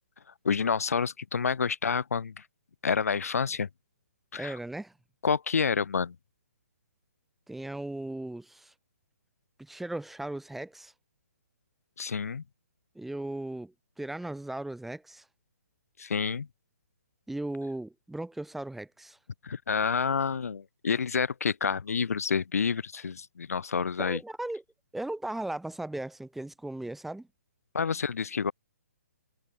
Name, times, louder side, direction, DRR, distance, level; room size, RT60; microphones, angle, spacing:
voice 1, 0.4-2.4 2.8-3.7 4.3-4.6 5.2-6.1 12.0-12.4 16.0-16.5 19.4-24.2 27.7-28.5, left 6 dB, 75° left, 6.9 m, -28 dB
voice 2, 4.4-4.9 7.5-8.7 9.6-10.9 12.9-15.3 17.3-19.2 24.0-24.6 24.9-27.3, right 1 dB, ahead, 4.2 m, -37 dB
hypercardioid pair, 155°, 8 cm